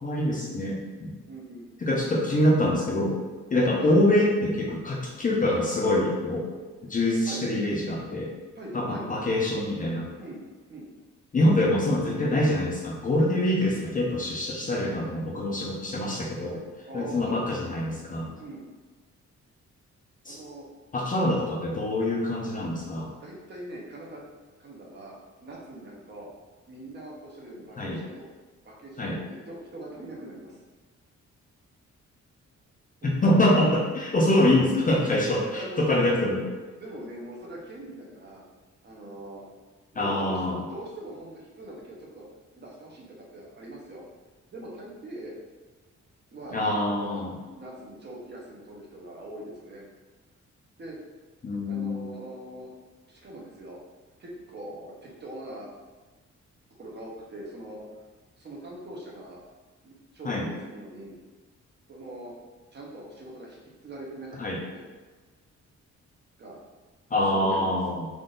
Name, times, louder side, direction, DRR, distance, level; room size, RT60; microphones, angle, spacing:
voice 1, 0.0-1.2 1.8-3.2 3.5-6.5 6.9-8.3 8.7-10.1 11.3-16.6 16.9-18.3 20.3-20.4 20.9-23.1 27.8-28.0 29.0-29.2 33.0-36.5 39.9-40.6 46.5-47.3 51.4-52.1 60.2-60.5 64.4-64.6 67.1-68.1, left 1 dB, 30° left, -3 dB, 0.5 m, -25 dB
voice 2, 1.3-1.7 3.8-3.9 7.2-7.4 8.5-9.4 10.1-10.4 10.7-10.9 16.9-17.4 18.4-18.7 20.2-20.6 23.2-24.3 24.6-26.3 26.7-28.2 28.6-29.1 29.5-30.6 33.0-33.5 35.5-36.3 36.8-38.4 38.8-39.4 39.9-42.3 42.6-44.0 44.5-45.3 46.3-47.2 47.6-49.9 50.8-51.0 51.7-52.7 53.0-53.8 54.2-55.8 56.8-57.8 58.4-59.4 59.8-61.2 61.9-62.3 62.7-64.4 64.7-64.8 66.4-66.6 67.3-67.7, right 1 dB, 35° right, -3 dB, 0.8 m, -42 dB
3.6 x 2.5 x 3.8 m, 1.3 s
wide cardioid pair, 170°, 29 cm